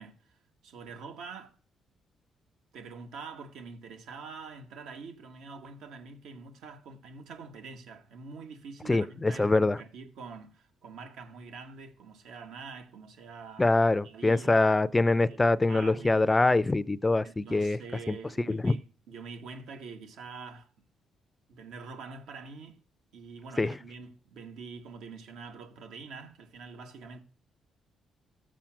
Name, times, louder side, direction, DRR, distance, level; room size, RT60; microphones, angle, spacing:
voice 1, 0.0-1.5 2.7-13.7 14.0-14.7 15.2-16.2 17.2-20.7 21.5-22.8 23.1-27.2, right 4 dB, 85° right, 1.9 m, -45 dB
voice 2, 8.9-9.8 13.6-17.8 18.1-18.2 18.5-18.7 23.6-23.7, left 2 dB, 20° left, 0.5 m, -24 dB
14.0 x 7.3 x 6.0 m
cardioid pair, 90°, 0 cm